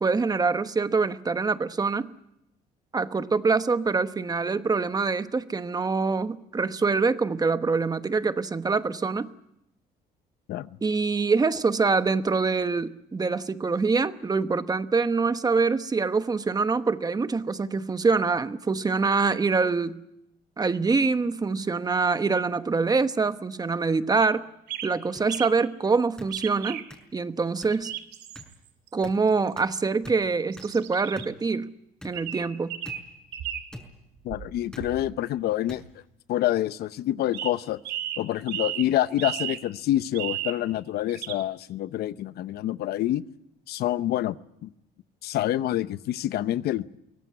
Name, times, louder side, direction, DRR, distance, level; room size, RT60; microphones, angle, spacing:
voice 1, 0.0-2.1 2.9-9.3 10.8-20.0 20.6-24.4 24.8-26.8 27.1-27.9 28.9-31.7 32.0-32.7, right 4 dB, 20° right, 11 dB, 1.1 m, -25 dB
sound 1, 24.2-24.3 24.7-24.9 25.3-25.5 26.3-26.8 27.7-28.4 28.9-29.0 29.5-29.6 30.5-31.3 32.1-33.0 33.3-33.7 34.3-35.1 37.3-37.5 37.8-38.9 39.2-39.6 40.1-40.6 41.1-41.4, right 11 dB, 80° right, 2.5 m, -34 dB
sound 2, 25.1-25.2 26.2-26.3 26.9-27.0 27.6-27.7 28.4-28.5 29.0-29.1 29.6-29.7 30.0-30.2 30.6-30.7 31.2-31.3 32.0-32.1 32.8-33.0 33.7-33.9 34.7-34.9 35.7-35.8 36.6-36.8, left 1 dB, 5° left, 5.2 m, -42 dB
voice 2, 34.2-35.8 36.3-37.8 38.2-43.2 43.7-44.4 44.6-44.7 45.2-47.0, left 13 dB, 70° left, 14 dB, 0.8 m, -27 dB
23.5 x 17.5 x 9.6 m, 0.84 s
cardioid pair, 110°, 17 cm